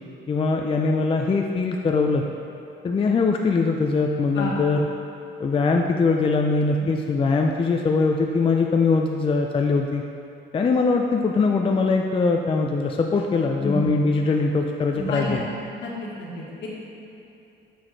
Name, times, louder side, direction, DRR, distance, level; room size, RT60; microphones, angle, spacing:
voice 1, 0.3-2.2 2.8-4.9 5.4-10.0 10.5-15.4, left 4 dB, 25° left, 2 dB, 0.4 m, -22 dB
voice 2, 14.9-15.4 15.8-15.9 16.2-16.7, left 1 dB, 65° left, -4 dB, 1.5 m, -30 dB
6.8 x 5.8 x 3.2 m, 2.8 s
cardioid pair, 90°, 20 cm